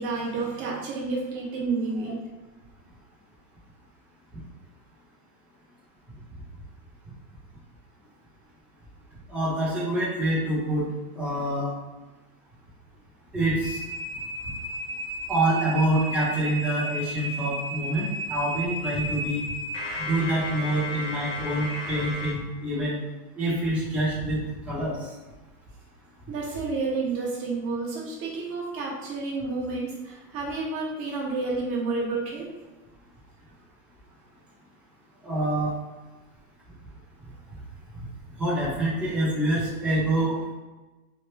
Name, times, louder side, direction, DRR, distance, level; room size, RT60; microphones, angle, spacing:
voice 1, 0.0-2.2 26.3-32.5, right 3 dB, 30° right, -3 dB, 1.0 m, -30 dB
voice 2, 9.3-10.8 11.1-11.7 13.3-13.8 15.3-19.4 20.0-22.9 23.4-24.4 24.7-25.1 35.2-35.7 38.4-40.3, right 1 dB, 5° right, -11 dB, 0.9 m, -26 dB
sound 1, 13.6-22.3, equal, 35° left, 1.3 m, -33 dB
3.3 x 2.3 x 3.2 m, 1.1 s
supercardioid pair, 145°, 46 cm